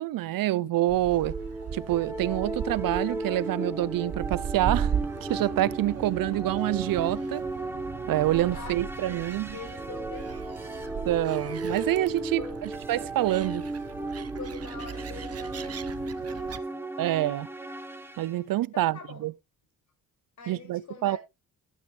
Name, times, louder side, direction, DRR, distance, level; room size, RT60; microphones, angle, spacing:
voice 1, 0.0-1.4 1.7-4.9 5.2-7.4 8.1-9.5 11.1-12.4 12.9-13.7 17.0-17.5 18.2-19.3 20.5-21.2, right 15 dB, 75° right, 0.5 m, -27 dB
Gull seagull, 0.9-16.6, right 8 dB, 45° right, 0.8 m, -38 dB
sound 1, 1.1-18.4, right 2 dB, 5° right, 1.2 m, -35 dB
voice 2, 8.5-10.7 12.4-12.6 14.3-16.8 18.5-19.3 20.4-21.2, left 5 dB, 55° left, 5.6 m, -44 dB
11.5 x 9.3 x 3.2 m
cardioid pair, 110°, 34 cm